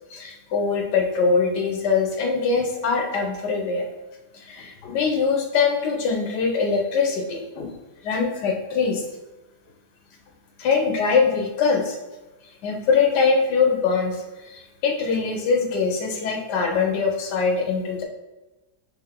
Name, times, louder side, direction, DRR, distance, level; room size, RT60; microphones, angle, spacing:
voice 1, 0.1-3.8 4.3-7.7 8.0-9.0 10.6-12.0 12.6-14.2 14.5-18.0, left 5 dB, 75° left, 2 dB, 1.3 m, -22 dB
3.5 x 3.4 x 3.6 m, 1.1 s
omnidirectional pair, 1.8 m